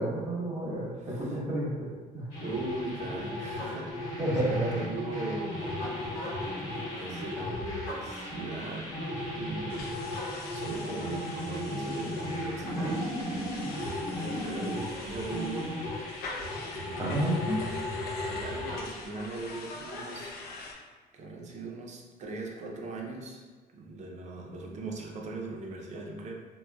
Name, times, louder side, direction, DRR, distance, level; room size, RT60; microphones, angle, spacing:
voice 1, 0.0-1.9 2.1-2.3 4.2-4.7 17.0-17.6, right 1 dB, 20° right, -6 dB, 0.9 m, -30 dB
voice 2, 1.0-1.4 2.4-5.8 6.9-8.9 9.3-10.0 10.3-13.6 14.2-15.8 16.7-17.6 18.3-20.3 20.6-23.4 23.7-26.3, right 2 dB, 45° right, 0 dB, 0.5 m, -39 dB
sound 1, 2.3-18.8, left 1 dB, 90° left, 1.0 m, -35 dB
sound 2, 9.7-20.7, left 3 dB, 65° left, 0.5 m, -44 dB
3.4 x 2.1 x 2.2 m, 1.4 s
cardioid pair, 110°, 17 cm